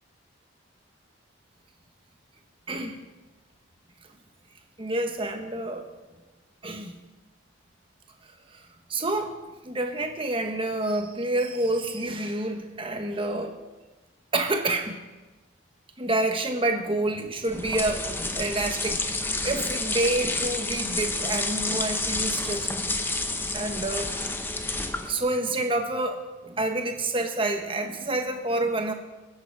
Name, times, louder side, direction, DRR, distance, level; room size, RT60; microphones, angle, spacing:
voice 1, 2.7-3.0 4.8-5.9 6.6-7.0 8.5-8.6 8.9-9.3 9.6-13.6 14.3-15.0 16.0-22.7 23.5-24.4 25.0-28.9, right 2 dB, 25° right, 5 dB, 1.2 m, -28 dB
sound 1, 17.4-25.2, left 2 dB, 10° left, 0.7 m, -29 dB
20.5 x 8.0 x 4.8 m, 1.2 s
head